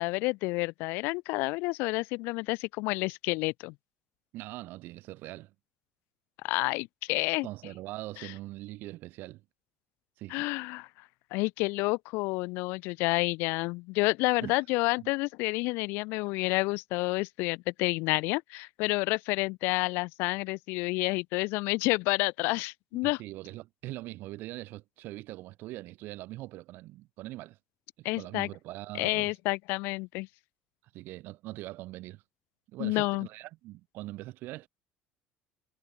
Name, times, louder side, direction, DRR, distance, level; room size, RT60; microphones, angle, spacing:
voice 1, 0.0-3.7 6.4-7.5 8.2-8.3 10.3-10.9 11.3-23.2 28.0-28.5 29.0-30.3 32.8-33.3, left 25 dB, 80° left, 0.4 m, -29 dB
voice 2, 4.3-5.5 7.4-9.4 10.2-10.5 14.4-14.5 15.0-15.1 23.0-27.6 28.0-29.3 30.9-32.2 32.7-34.7, right 17 dB, 65° right, 4.8 m, -42 dB
cardioid pair, 130°, 4 cm